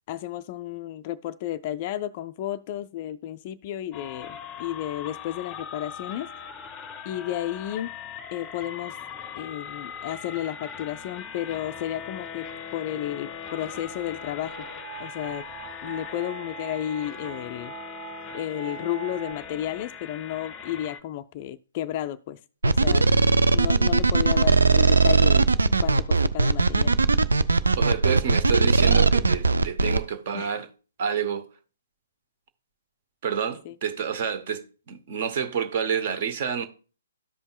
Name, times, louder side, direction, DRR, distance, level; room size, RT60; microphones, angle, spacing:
voice 1, 0.1-6.3 7.1-7.9 8.3-9.0 9.3-14.7 15.0-15.4 15.8-17.7 18.3-23.1 23.5-25.5 25.8-26.9 30.3-30.5 33.7-33.8, left 12 dB, 35° left, 0.3 m, -32 dB
sound 1, 3.9-21.0, left 7 dB, 20° left, 0.7 m, -40 dB
sound 2, 12.2-19.3, right 17 dB, 15° right, 1.4 m, -44 dB
sound 3, 22.6-30.0, right 3 dB, 70° right, 0.5 m, -19 dB
voice 2, 27.8-30.7 31.0-31.5 33.2-36.7, right 7 dB, 40° right, 0.9 m, -28 dB
13.5 x 5.3 x 2.3 m
figure-of-eight pair, 125°, 0 cm